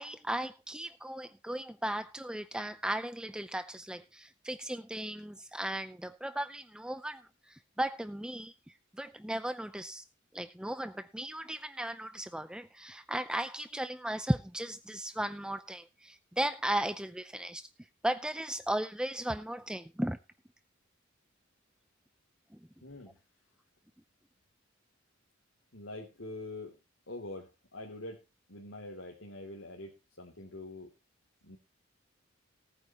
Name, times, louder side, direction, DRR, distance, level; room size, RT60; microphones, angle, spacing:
voice 1, 0.0-10.1 10.3-17.7 18.0-20.2 22.5-22.6, right 1 dB, 5° right, 12 dB, 0.5 m, -36 dB
voice 2, 22.8-23.2 25.7-26.8 27.1-28.2 28.5-30.9 31.4-31.6, left 2 dB, 70° left, 1 dB, 2.9 m, -44 dB
19.0 x 9.1 x 3.0 m, 0.27 s
head